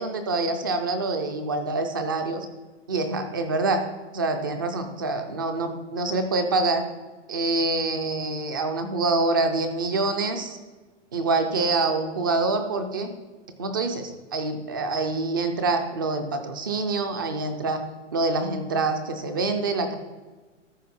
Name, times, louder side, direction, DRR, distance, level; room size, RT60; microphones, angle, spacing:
voice 1, 0.0-2.5 2.9-3.8 4.1-6.8 7.3-10.6 11.1-13.1 13.6-17.8 18.1-20.0, right 3 dB, 20° right, 7 dB, 0.4 m, -26 dB
13.0 x 6.3 x 4.2 m, 1.3 s
hypercardioid pair, 160°, 37 cm